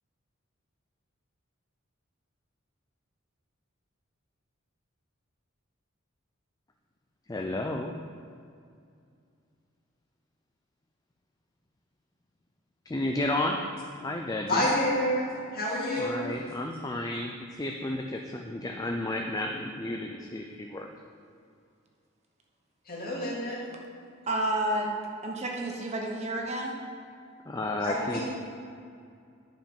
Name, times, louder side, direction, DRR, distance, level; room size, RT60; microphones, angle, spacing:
voice 1, 7.3-7.9 12.9-13.6 14.0-14.7 16.0-20.9 27.5-28.2, left 1 dB, 20° left, 2 dB, 0.4 m, -32 dB
voice 2, 14.5-15.2 15.5-16.3 22.9-23.6 27.8-28.2, left 1 dB, 45° left, -6 dB, 2.4 m, -28 dB
voice 3, 24.3-24.9 25.2-26.8, right 1 dB, 30° right, 0 dB, 1.0 m, -30 dB
10.5 x 5.1 x 5.3 m, 2.3 s
head